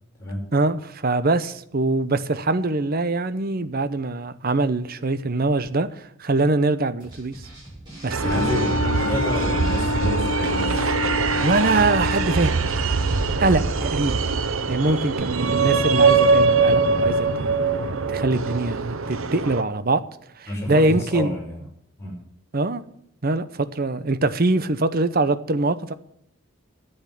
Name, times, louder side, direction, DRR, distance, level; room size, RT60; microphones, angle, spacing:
voice 1, 0.5-7.5 8.0-9.0 11.4-12.5 13.4-14.2 14.7-17.5 18.1-20.0 20.4-21.3 22.5-22.8 23.2-25.9, right 2 dB, 45° right, 0.7 m, -23 dB
sound 1, 7.0-13.9, right 1 dB, 20° right, 7.4 m, -43 dB
sound 2, 8.1-19.6, right 4 dB, 70° right, 0.8 m, -22 dB
Wind instrument woodwind instrument, 8.2-12.4, left 4 dB, 35° left, 0.6 m, -28 dB
voice 2, 8.2-10.9 13.8-13.9 14.8-15.0 20.5-21.6 22.0-22.2, equal, 10° left, 5.4 m, -29 dB
10.5 x 8.2 x 9.8 m
head